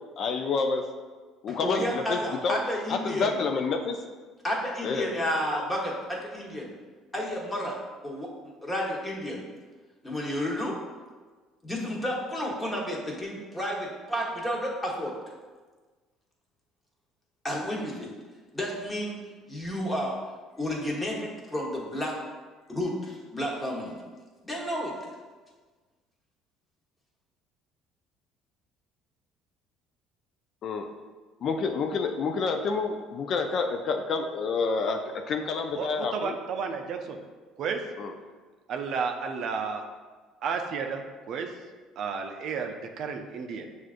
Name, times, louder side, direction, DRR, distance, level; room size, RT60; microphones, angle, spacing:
voice 1, 0.2-0.9 1.4-2.6 2.9-4.0 4.8-5.1 30.6-30.9 31.4-36.3 38.0-38.1, left 4 dB, 55° left, 5 dB, 0.3 m, -28 dB
voice 2, 1.5-3.3 4.4-6.7 7.1-8.3 8.6-9.4 10.0-10.8 11.6-15.1 17.4-18.1 18.5-19.2 19.5-20.2 20.6-22.2 22.7-23.9 24.4-24.9, equal, 15° left, -3 dB, 1.1 m, -31 dB
voice 3, 35.7-37.2 37.6-37.8 38.7-39.8 40.4-41.5 42.0-43.7, right 5 dB, 60° right, 5 dB, 0.4 m, -32 dB
6.1 x 2.4 x 2.5 m, 1.4 s
supercardioid pair, 85°, 0 cm